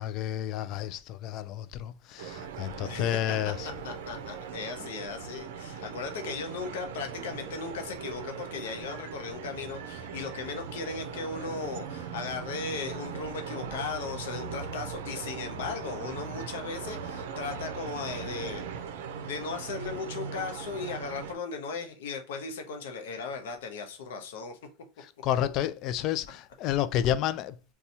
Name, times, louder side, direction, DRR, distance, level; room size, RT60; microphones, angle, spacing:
voice 1, 0.0-3.6 25.2-27.5, left 11 dB, 50° left, 0.3 m, -30 dB
sound 1, 2.2-21.3, right 6 dB, 85° right, 0.5 m, -39 dB
voice 2, 2.8-3.4 3.6-18.7 19.2-24.6, left 4 dB, 90° left, 0.7 m, -37 dB
2.7 x 2.3 x 4.1 m
supercardioid pair, 125°, 0 cm